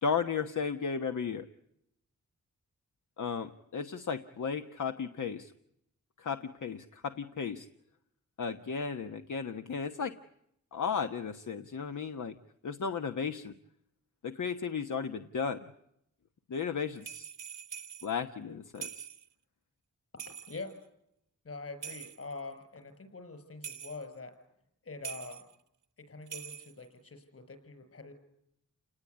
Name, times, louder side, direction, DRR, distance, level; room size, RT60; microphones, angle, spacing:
voice 1, 0.0-1.5 3.2-5.5 6.2-7.7 8.4-10.2 10.7-12.4 12.6-13.5 14.2-15.7 16.5-17.3 18.0-19.1, left 6 dB, 75° left, 6 dB, 1.4 m, -34 dB
sound 1, 17.0-18.1 18.8-19.3 20.2-20.8 21.8-22.4 23.6-24.1 25.0-25.5 26.2-26.9, right 7 dB, 75° right, 1.2 m, -44 dB
voice 2, 20.5-20.8 21.4-24.3 24.8-25.4 26.0-28.1, left 3 dB, 50° left, 10 dB, 6.4 m, -44 dB
30.0 x 19.0 x 9.5 m, 0.78 s
wide cardioid pair, 135°, 31 cm